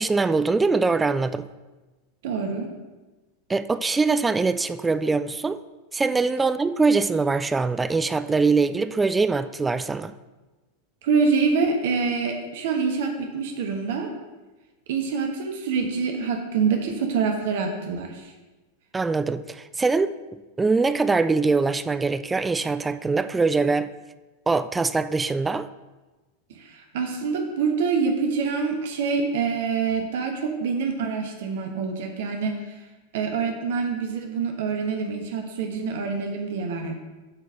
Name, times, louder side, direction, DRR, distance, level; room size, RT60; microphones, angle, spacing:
voice 1, 0.0-1.4 3.5-5.6 5.9-10.1 18.9-20.1 20.6-23.9 24.5-25.7, right 4 dB, 10° right, 12 dB, 0.3 m, -23 dB
voice 2, 2.2-2.7 11.0-14.1 14.9-18.3 26.5-32.8 33.1-36.9, right 5 dB, 55° right, 3 dB, 1.2 m, -26 dB
7.7 x 4.6 x 6.0 m, 1.2 s
figure-of-eight pair, 90°, 0 cm